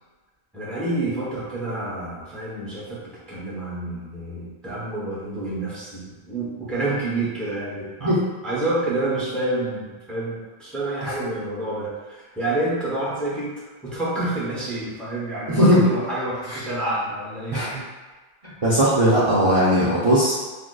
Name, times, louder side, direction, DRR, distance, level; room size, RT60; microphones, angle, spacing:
voice 1, 0.5-8.1 8.4-13.5 13.8-17.6, right 2 dB, ahead, -7 dB, 0.6 m, -28 dB
voice 2, 15.5-15.8 16.5-16.6 17.5-17.8 18.4-20.3, equal, 40° right, -9 dB, 0.6 m, -19 dB
5.0 x 2.0 x 2.2 m, 1.3 s
omnidirectional pair, 1.1 m